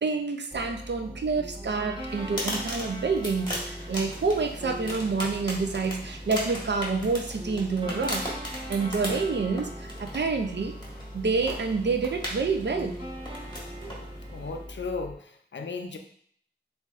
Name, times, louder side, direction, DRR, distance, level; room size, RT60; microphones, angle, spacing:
voice 1, 0.0-8.3 8.7-10.7 11.1-13.0, right 4 dB, 70° right, 5 dB, 0.5 m, -28 dB
sound 1, 0.5-15.1, equal, 25° right, 1.0 m, -40 dB
sound 2, 2.0-14.7, equal, 25° left, 1.4 m, -38 dB
voice 2, 14.3-16.0, left 4 dB, 80° left, 5 dB, 0.5 m, -35 dB
7.3 x 2.6 x 2.5 m, 0.62 s
wide cardioid pair, 55°, 19 cm